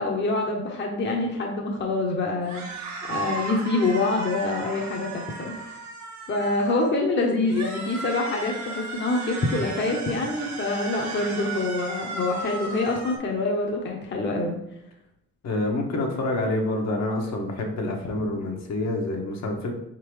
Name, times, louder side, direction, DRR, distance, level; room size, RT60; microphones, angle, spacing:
voice 1, 0.0-5.6 6.3-14.6, left 2 dB, 35° left, 0 dB, 0.8 m, -26 dB
sound 1, 2.4-6.9 7.4-13.2, right 3 dB, 65° right, 1.0 m, -35 dB
voice 2, 15.4-19.7, left 2 dB, 60° left, 1 dB, 1.0 m, -27 dB
4.1 x 3.7 x 3.1 m, 0.79 s
cardioid pair, 90°, 30 cm